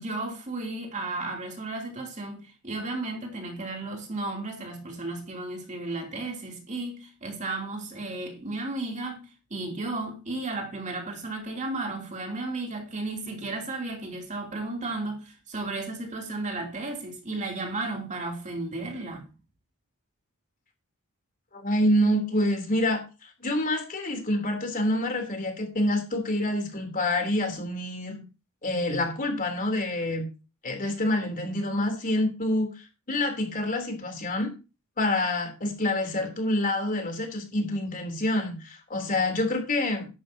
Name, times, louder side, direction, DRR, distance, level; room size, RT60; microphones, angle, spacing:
voice 1, 0.0-19.3, right 2 dB, 35° right, 3.0 m, -34 dB
voice 2, 21.5-28.2 28.6-30.3 30.6-34.5 35.0-40.1, left 1 dB, 40° left, 3.3 m, -27 dB
13.0 x 11.5 x 2.8 m
head